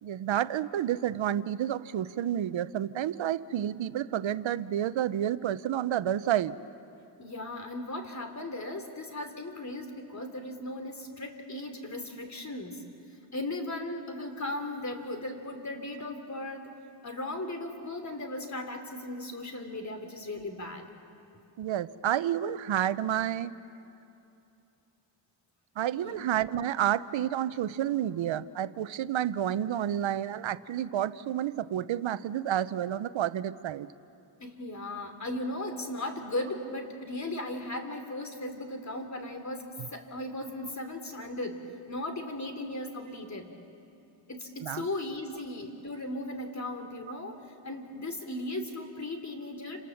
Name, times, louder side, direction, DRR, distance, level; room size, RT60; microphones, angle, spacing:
voice 1, 0.0-6.5 21.6-23.5 25.8-33.9 44.6-44.8, right 11 dB, 85° right, 15 dB, 0.8 m, -30 dB
voice 2, 7.2-12.8 13.3-16.7 17.0-20.8 25.9-26.3 34.4-43.5 44.3-49.8, left 1 dB, 35° left, 6 dB, 3.1 m, -37 dB
29.5 x 27.0 x 7.1 m, 2.7 s
wide cardioid pair, 95°, 45 cm